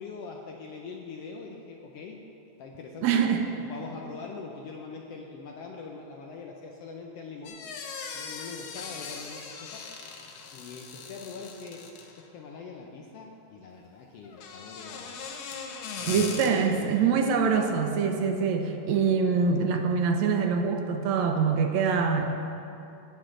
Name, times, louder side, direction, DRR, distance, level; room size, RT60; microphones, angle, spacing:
voice 1, 0.0-2.2 2.6-3.2 3.6-7.6 8.1-9.8 10.5-11.9 12.3-15.2 16.0-17.3, left 4 dB, 75° left, 0 dB, 1.5 m, -42 dB
voice 2, 3.0-3.5 16.0-22.2, right 5 dB, 75° right, 4 dB, 1.9 m, -24 dB
sound 1, 7.4-12.3 14.2-16.5, left 5 dB, 90° left, 1.1 m, -40 dB
17.5 x 6.5 x 3.8 m, 2.8 s
omnidirectional pair, 3.4 m